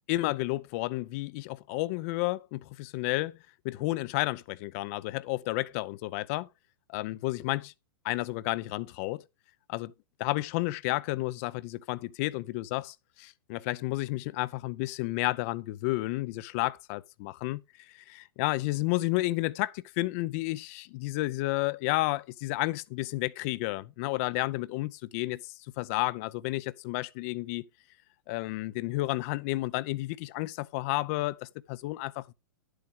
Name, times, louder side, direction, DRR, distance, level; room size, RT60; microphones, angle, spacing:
voice 1, 0.0-3.4 3.6-6.5 6.9-7.7 8.0-9.2 9.7-9.9 10.2-17.6 18.1-27.6 28.3-32.3, left 19 dB, 40° left, 0.5 m, -31 dB
11.0 x 7.9 x 3.6 m
figure-of-eight pair, 105°, 12 cm